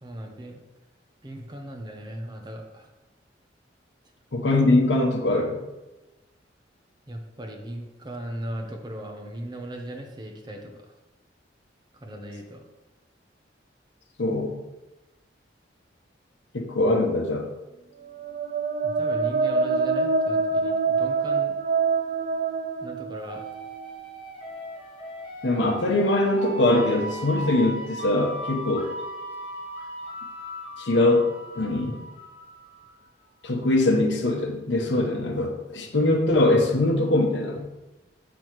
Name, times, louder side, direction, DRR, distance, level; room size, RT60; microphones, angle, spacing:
voice 1, 0.0-0.6 1.2-2.9 7.1-10.8 11.9-12.6 18.8-21.6 22.8-23.4 38.0-38.1, right 1 dB, 25° right, 2 dB, 0.8 m, -38 dB
voice 2, 4.3-5.6 14.2-14.6 16.5-17.5 25.4-28.9 30.8-32.1 33.4-37.7, left 2 dB, 75° left, 3 dB, 0.9 m, -22 dB
sound 1, 18.1-23.9, right 4 dB, 45° right, 0.4 m, -25 dB
sound 2, 23.2-32.9, right 1 dB, 30° left, 1.1 m, -38 dB
6.9 x 6.1 x 3.1 m, 1.0 s
head